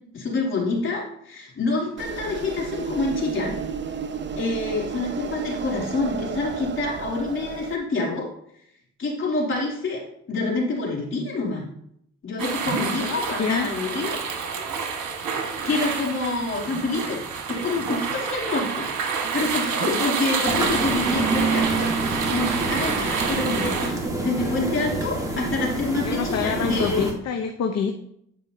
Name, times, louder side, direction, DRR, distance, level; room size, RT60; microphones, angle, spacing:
voice 1, 0.1-3.5 4.4-8.3 9.0-11.6 12.2-14.2 15.6-17.2 17.5-18.9 19.3-21.9 22.3-27.1, left 3 dB, 40° left, -3 dB, 3.1 m, -27 dB
sound 1, 2.0-7.8, right 6 dB, 40° right, 0.6 m, -32 dB
sound 2, 12.4-23.9, right 5 dB, 75° right, 1.5 m, -28 dB
voice 2, 12.7-13.7 25.3-25.5 26.0-27.9, left 6 dB, 55° left, 4 dB, 0.8 m, -27 dB
sound 3, 20.4-27.1, right 2 dB, 10° right, 1.5 m, -27 dB
10.0 x 5.5 x 2.8 m, 0.72 s
cardioid pair, 90°, 30 cm